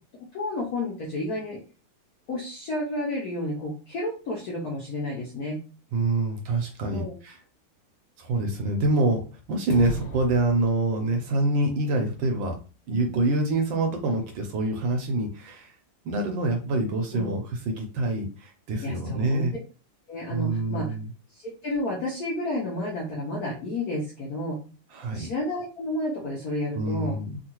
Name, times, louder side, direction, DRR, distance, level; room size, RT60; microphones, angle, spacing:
voice 1, 0.3-1.6 2.3-5.6 6.9-7.2 17.1-17.3 18.8-19.4 20.1-20.9 21.3-24.6 25.1-27.2, left 1 dB, 70° left, -4 dB, 0.9 m, -31 dB
voice 2, 5.9-7.4 8.2-12.6 12.9-15.7 16.0-19.6 20.3-21.1 24.9-25.3 26.7-27.4, right 2 dB, 75° right, 3 dB, 1.2 m, -26 dB
sound 1, 9.7-11.3, right 2 dB, 85° left, 1.8 m, -36 dB
3.6 x 2.3 x 2.9 m, 0.34 s
omnidirectional pair, 2.4 m